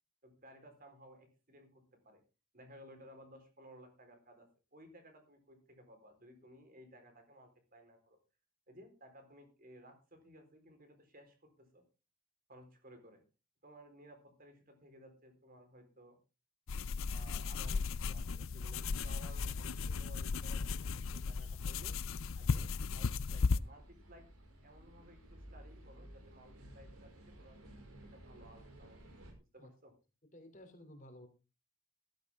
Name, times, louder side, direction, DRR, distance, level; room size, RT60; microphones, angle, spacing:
voice 1, 0.2-2.2 2.5-8.2 8.7-11.8 12.5-13.2 13.6-16.2 17.1-22.0 22.3-27.1 27.4-27.6 28.1-29.0 29.5-29.9, equal, 40° right, 6 dB, 4.2 m, -58 dB
sound 1, 16.7-23.6, left 4 dB, 65° left, 0.5 m, -36 dB
sound 2, 23.4-29.3, right 1 dB, 85° right, 5.1 m, -55 dB
voice 2, 30.3-31.3, left 1 dB, 35° left, 7 dB, 3.1 m, -54 dB
14.5 x 12.5 x 3.6 m, 0.31 s
head